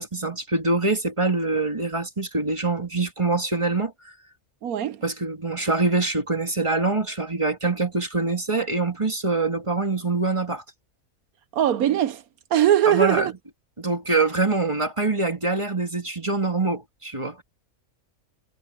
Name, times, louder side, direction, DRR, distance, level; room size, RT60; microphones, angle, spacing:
voice 1, 0.0-4.1 5.0-10.6 12.9-13.3 13.8-17.4, right 3 dB, 20° right, 2.2 m, -24 dB
voice 2, 4.6-5.0 11.5-12.2 12.5-13.3, right 11 dB, 80° right, 1.2 m, -20 dB
omnidirectional pair, 1.5 m